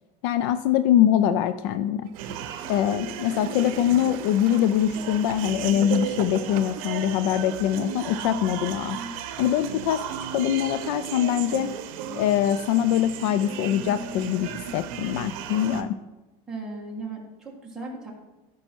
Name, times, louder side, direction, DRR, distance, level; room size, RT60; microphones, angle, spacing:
voice 1, 0.2-2.1 2.7-9.0 9.4-10.0 10.3-11.7 12.2-16.0, left 10 dB, 50° left, 12 dB, 0.4 m, -23 dB
Gurgling / Toilet flush, 2.1-6.9 7.8-7.9, right 10 dB, 85° right, 0.7 m, -41 dB
sound 1, 2.2-15.8, right 8 dB, 65° right, 0.9 m, -35 dB
voice 2, 16.5-18.1, right 3 dB, 5° right, -4 dB, 1.6 m, -36 dB
14.0 x 5.5 x 4.5 m, 1.1 s
supercardioid pair, 175°, 19 cm